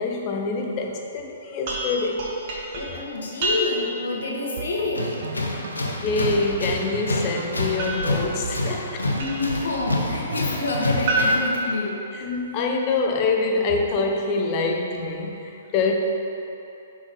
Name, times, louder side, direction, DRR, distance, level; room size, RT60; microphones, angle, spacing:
voice 1, 0.0-2.3 5.7-9.0 12.1-16.0, left 3 dB, 35° left, 2 dB, 0.8 m, -25 dB
sound 1, 1.7-4.0 7.8-9.7 11.1-12.5, right 1 dB, 50° right, 1.3 m, -29 dB
voice 2, 2.7-5.1 9.1-12.0, left 2 dB, 70° left, -2 dB, 1.2 m, -27 dB
sound 2, 4.6-11.4, right 6 dB, 65° right, 0.4 m, -36 dB
Tools, 4.9-11.5, left 2 dB, 90° left, 0.8 m, -28 dB
5.8 x 4.6 x 4.5 m, 2.9 s
hypercardioid pair, 125°, 0 cm